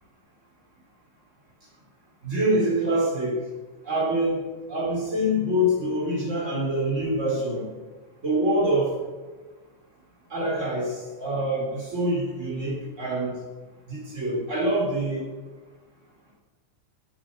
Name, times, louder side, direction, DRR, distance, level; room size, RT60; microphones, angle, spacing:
voice 1, 2.2-3.4 3.8-4.4 4.7-7.7 8.2-9.0 10.3-13.4 13.9-15.3, equal, 15° right, -2 dB, 3.5 m, -25 dB
16.0 x 10.0 x 6.8 m, 1.3 s
omnidirectional pair, 5.2 m